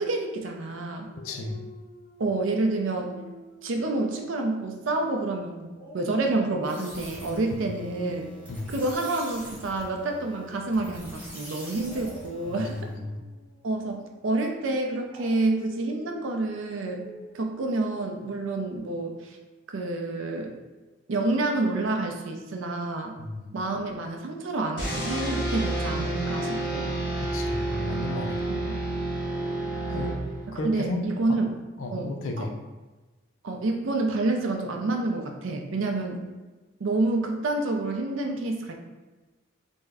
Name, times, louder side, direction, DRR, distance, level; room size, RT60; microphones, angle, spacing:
voice 1, 0.0-1.1 2.2-3.2 3.6-8.3 8.7-12.8 13.6-17.0 17.3-19.4 19.7-20.6 21.1-23.1 23.5-26.9 28.5-28.7 29.9-30.0 30.5-31.5 31.9-32.1 32.4-32.5 33.4-36.2 36.8-38.7, right 2 dB, 75° right, 3 dB, 0.5 m, -28 dB
Dog, 1.1-5.3 5.7-10.7 11.8-18.8, right 1 dB, 45° left, 1.3 m, -49 dB
voice 2, 1.2-1.6 7.5-7.6 8.5-8.8 12.5-13.2 23.2-23.5 27.2-28.5 29.9-30.1 30.5-31.4 31.8-32.5, left 2 dB, 75° left, 4 dB, 0.4 m, -33 dB
sound 1, 6.6-13.0, equal, 10° right, 0.9 m, -45 dB
sound 2, 24.8-30.6, right 2 dB, 20° left, 1.2 m, -29 dB
3.4 x 2.1 x 3.4 m, 1.2 s
head